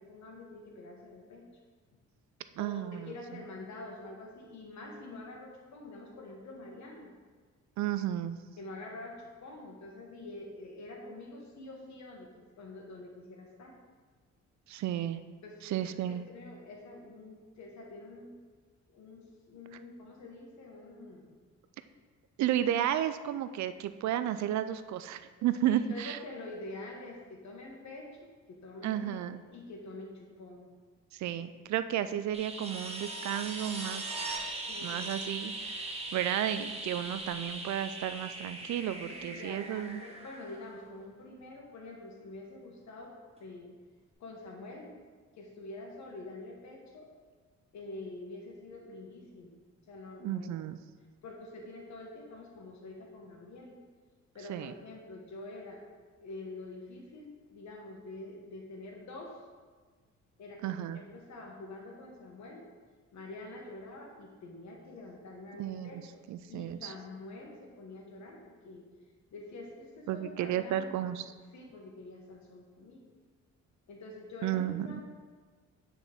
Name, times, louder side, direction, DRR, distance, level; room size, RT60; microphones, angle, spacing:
voice 1, 0.0-1.4 2.6-7.1 8.6-12.3 12.6-13.8 15.4-18.3 18.9-21.4 25.7-28.1 28.5-29.2 29.5-30.7 34.7-35.0 36.2-36.3 39.1-43.1 43.4-43.7 44.2-45.0 45.4-47.1 47.7-49.6 49.9-50.6 51.2-53.7 54.3-55.8 56.2-59.4 60.4-62.6 63.1-68.8 69.3-71.1 71.5-73.1 73.9-75.0, left 2 dB, 65° left, 0 dB, 1.5 m, -46 dB
voice 2, 2.6-3.1 7.8-8.4 14.7-15.2 15.6-16.2 22.4-26.2 28.8-29.4 31.1-34.1 34.8-40.1 50.2-50.8 54.5-54.7 60.6-61.0 65.6-66.0 66.3-66.9 70.1-71.2 74.4-75.0, right 11 dB, 70° right, 11 dB, 0.4 m, -33 dB
sound 1, 32.3-41.0 43.4-43.5, right 2 dB, 20° right, 1.2 m, -40 dB
9.0 x 4.3 x 3.5 m, 1.5 s
cardioid pair, 90°, 30 cm